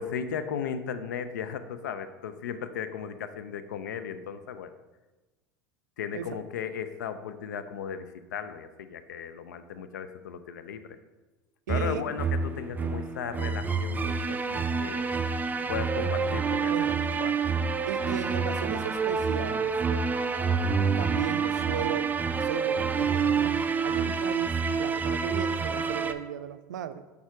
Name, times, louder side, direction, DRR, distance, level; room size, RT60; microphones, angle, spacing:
voice 1, 0.0-4.7 6.0-11.0 11.7-15.2 15.7-16.9 17.2-17.4, left 7 dB, 85° left, 11 dB, 0.4 m, -36 dB
voice 2, 6.1-6.4 11.7-12.0 16.7-17.0 17.9-19.7 21.0-23.5 23.8-27.0, right 10 dB, 85° right, 12 dB, 0.4 m, -36 dB
sound 1, 11.7-26.1, right 5 dB, 20° right, 0.4 m, -28 dB
6.3 x 3.5 x 4.8 m, 1.2 s
hypercardioid pair, 80°, 9 cm